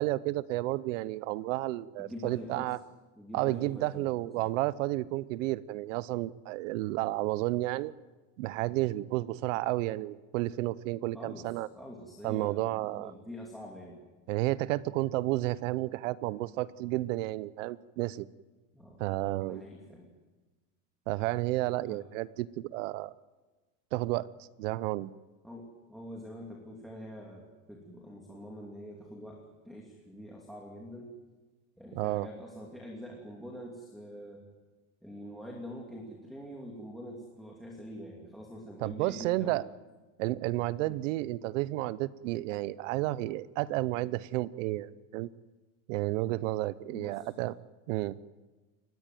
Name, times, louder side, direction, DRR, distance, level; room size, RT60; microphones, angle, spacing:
voice 1, 0.0-2.8 3.3-7.9 8.4-11.7 12.2-13.1 14.3-18.3 19.0-19.6 21.1-23.1 23.9-24.3 24.6-25.1 31.9-32.3 38.8-39.7 40.2-45.3 45.9-47.5 47.9-48.2, right 17 dB, 65° right, 19 dB, 0.8 m, -31 dB
voice 2, 2.0-2.8 3.2-4.1 4.4-4.5 11.1-14.0 18.7-19.0 19.4-20.1 21.8-22.0 25.4-31.2 31.8-34.5 35.0-39.6 40.9-41.0 46.9-47.3, equal, ahead, 0 dB, 2.9 m, -45 dB
29.5 x 14.0 x 9.3 m, 1.3 s
supercardioid pair, 145°, 40 cm